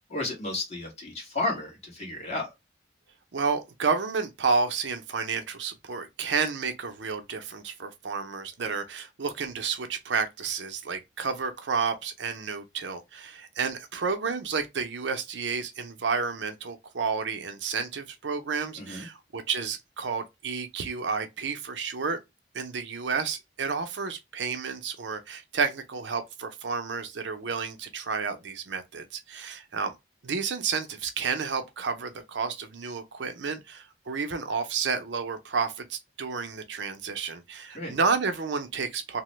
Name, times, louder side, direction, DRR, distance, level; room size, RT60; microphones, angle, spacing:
voice 1, 0.1-2.5 18.8-19.1 37.7-37.9, left 2 dB, 40° left, 1.4 m, -32 dB
voice 2, 3.3-22.2 22.5-29.9 30.2-39.2, right 5 dB, 85° right, 0.6 m, -31 dB
2.9 x 2.1 x 3.1 m
head